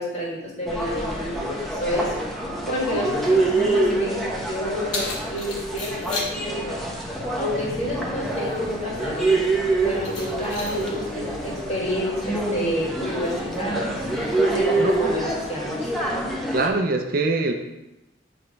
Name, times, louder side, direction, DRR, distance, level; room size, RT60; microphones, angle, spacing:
voice 1, 0.0-2.3 2.7-6.8 7.3-9.4 9.8-14.1 14.4-15.9, left 1 dB, 35° left, -4 dB, 1.9 m, -29 dB
sound 1, 0.7-16.7, right 2 dB, ahead, 0.9 m, -26 dB
Keys jangling, 4.3-15.3, left 2 dB, 75° left, 1.7 m, -39 dB
voice 2, 16.5-17.5, right 3 dB, 50° right, 4 dB, 0.5 m, -23 dB
7.9 x 3.3 x 5.2 m, 1.0 s
head